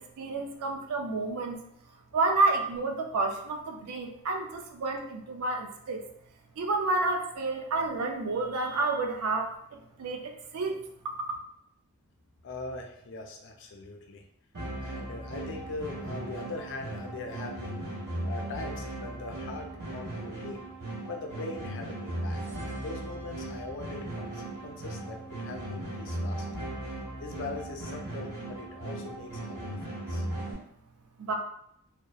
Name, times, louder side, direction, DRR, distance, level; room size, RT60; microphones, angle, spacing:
voice 1, 0.2-1.6 2.1-6.0 6.6-9.6 10.0-10.8 31.2-31.4, right 3 dB, 80° right, 3 dB, 0.4 m, -29 dB
voice 2, 12.4-14.2 14.8-17.8 18.2-20.6 21.1-22.4 22.7-26.6 27.2-30.3, left 3 dB, 55° left, 2 dB, 0.4 m, -41 dB
sound 1, 14.5-30.5, right 1 dB, 50° right, 1.3 m, -37 dB
2.8 x 2.0 x 2.3 m, 0.72 s
head